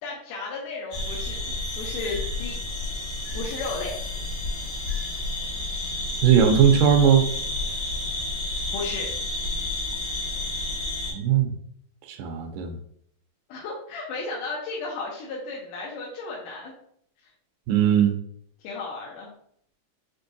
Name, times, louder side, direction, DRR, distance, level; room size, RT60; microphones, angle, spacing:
voice 1, 0.0-2.6 3.3-3.9 8.7-9.1 13.5-16.7 18.6-19.3, left 3 dB, 80° left, -4 dB, 2.2 m, -34 dB
sound 1, 0.9-11.1, left 2 dB, 50° left, 2.1 m, -30 dB
voice 2, 6.2-7.3 11.1-11.5 12.1-12.8 17.7-18.2, right 8 dB, 85° right, 4 dB, 2.2 m, -19 dB
6.0 x 2.6 x 2.6 m, 0.66 s
omnidirectional pair, 3.8 m